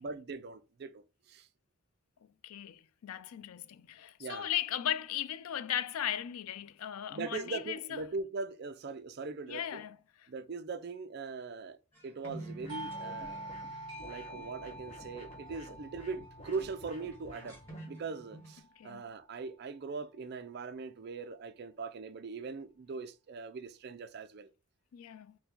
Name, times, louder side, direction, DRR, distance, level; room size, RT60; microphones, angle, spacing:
voice 1, 0.0-1.5 4.2-4.5 7.1-9.8 10.3-11.8 12.0-13.5 14.0-17.6 17.9-24.5, right 4 dB, 50° right, 0.4 m, -41 dB
voice 2, 2.4-8.0 9.5-10.0 18.8-19.0 24.9-25.4, left 11 dB, 85° left, 0.4 m, -37 dB
sound 1, 11.9-15.9 16.2-16.7 17.0-18.6, right 1 dB, 10° left, 1.4 m, -50 dB
sound 2, 12.6-17.9, left 1 dB, 30° left, 1.2 m, -52 dB
Doorbell, 12.7-18.0, right 1 dB, 20° right, 1.3 m, -46 dB
4.5 x 2.1 x 3.8 m
head